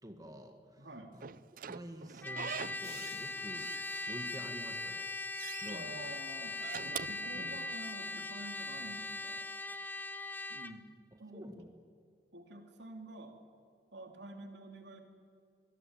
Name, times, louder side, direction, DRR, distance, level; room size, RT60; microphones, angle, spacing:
voice 1, 0.0-1.2 1.7-3.7 4.1-5.0 5.6-6.1 7.3-7.6 11.3-11.7, equal, 20° right, 5 dB, 1.8 m, -48 dB
voice 2, 0.8-1.1 5.6-6.6 7.1-9.4 10.5-10.9 11.2-11.5 12.3-13.4 13.9-15.0, right 2 dB, 75° right, 4 dB, 3.2 m, -49 dB
Slam / Squeak, 1.2-3.2 3.5-4.5 4.9-5.8 6.5-8.0, right 7 dB, 55° right, 0.5 m, -45 dB
Trumpet, 2.2-10.8, left 2 dB, 10° left, 0.8 m, -40 dB
sound 1, 2.8-5.1, left 7 dB, 35° left, 1.4 m, -58 dB
25.0 x 20.0 x 9.1 m, 2.2 s
head